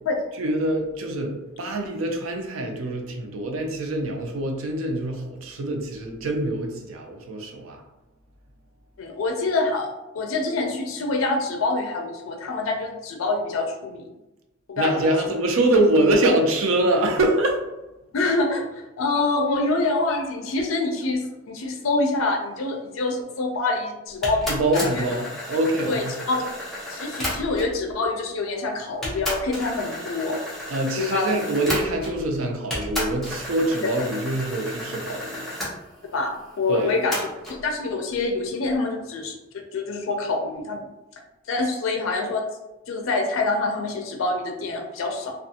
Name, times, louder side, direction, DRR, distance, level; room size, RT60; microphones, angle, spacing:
voice 1, 0.4-7.8 14.8-17.6 24.5-26.1 30.3-30.4 30.7-35.5 36.7-36.9, right 1 dB, 85° right, 3 dB, 0.5 m, -24 dB
voice 2, 9.0-9.9 10.1-14.0 14.7-15.4 18.1-25.1 25.9-26.5 26.9-30.4 31.0-31.3 34.0-34.1 36.1-40.9 41.5-42.5 42.9-45.3, left 3 dB, 75° left, 3 dB, 0.4 m, -26 dB
sound 1, 24.2-27.8 28.5-28.6 29.0-32.3 32.7-35.7 37.1-37.6, left 1 dB, ahead, 0.7 m, -32 dB
2.4 x 2.3 x 2.7 m, 0.99 s
head